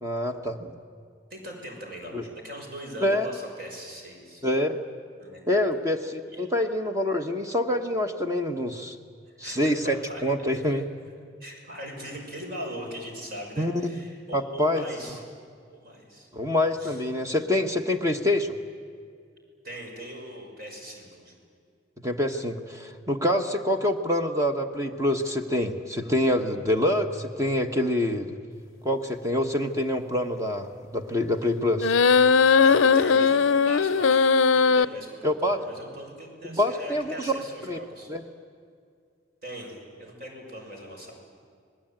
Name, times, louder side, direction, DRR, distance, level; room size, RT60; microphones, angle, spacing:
voice 1, 0.0-0.7 2.1-2.2 3.0-3.3 4.4-4.8 5.5-9.0 9.4-10.9 13.6-14.0 14.3-14.8 16.3-18.5 22.0-28.4 28.8-32.0 35.2-35.6 36.4-37.8 38.1-38.2, left 1 dB, 15° right, 5 dB, 1.1 m, -26 dB
voice 2, 1.3-4.5 5.2-5.7 6.3-6.4 9.3-10.2 10.5-10.8 11.4-15.4 15.7-16.3 16.8-17.0 19.6-21.3 32.6-38.1 39.4-41.1, equal, 50° right, 1 dB, 6.2 m, -40 dB
sound 1, 31.8-34.8, left 5 dB, 85° left, 0.5 m, -19 dB
27.0 x 20.5 x 9.0 m, 2.2 s
head